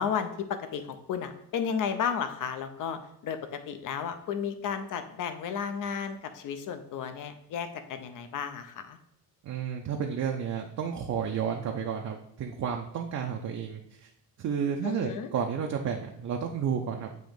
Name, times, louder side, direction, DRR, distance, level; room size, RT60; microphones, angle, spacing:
voice 1, 0.0-9.0 14.8-15.3, left 7 dB, 50° left, 9 dB, 0.7 m, -33 dB
voice 2, 9.4-14.1 14.4-17.1, right 7 dB, 45° right, 2 dB, 0.6 m, -31 dB
7.7 x 3.0 x 5.1 m, 0.74 s
cardioid pair, 160°, 40 cm